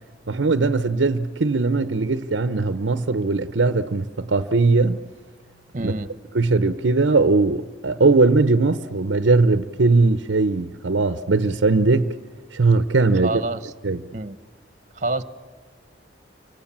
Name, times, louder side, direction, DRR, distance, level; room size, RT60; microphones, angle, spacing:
voice 1, 0.3-5.0 5.8-5.9 6.3-12.2 12.5-13.3 13.8-14.0, right 3 dB, 85° right, 0.8 m, -19 dB
voice 2, 5.7-6.1 13.2-13.7 14.1-14.4 14.9-15.2, right 2 dB, 40° right, 1.2 m, -27 dB
29.5 x 25.0 x 7.3 m
head